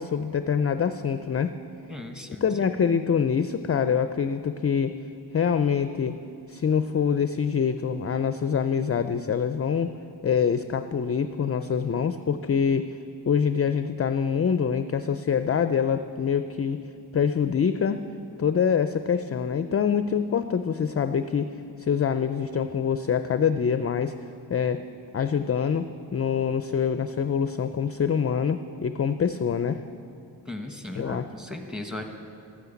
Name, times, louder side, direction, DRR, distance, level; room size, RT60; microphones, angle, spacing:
voice 1, 0.0-1.5 2.4-5.0 5.3-6.2 6.5-9.9 10.2-12.9 13.3-16.8 17.1-18.1 18.4-21.5 21.8-24.1 24.5-24.8 25.1-29.8 31.0-31.3, left 7 dB, 35° left, 10 dB, 0.4 m, -25 dB
voice 2, 1.9-2.4 30.5-32.0, left 2 dB, ahead, 4 dB, 1.2 m, -37 dB
12.5 x 9.5 x 8.2 m, 2.5 s
wide cardioid pair, 115°, 42 cm